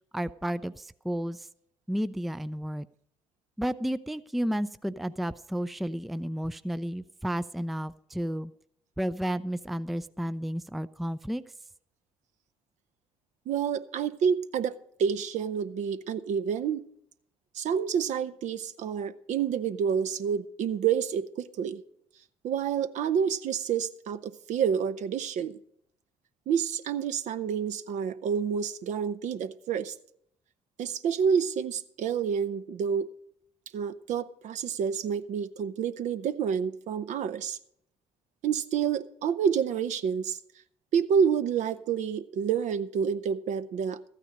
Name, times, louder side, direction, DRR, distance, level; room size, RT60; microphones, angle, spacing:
voice 1, 0.1-1.5 1.9-2.9 3.6-8.5 9.0-11.4, equal, ahead, 15 dB, 0.4 m, -32 dB
voice 2, 13.5-16.8 17.5-21.8 22.4-25.6 26.5-30.0 30.8-33.1 33.7-37.6 38.4-40.4 40.9-44.1, right 7 dB, 55° right, 12 dB, 0.7 m, -28 dB
13.5 x 9.1 x 5.2 m, 0.70 s
hypercardioid pair, 50°, 14 cm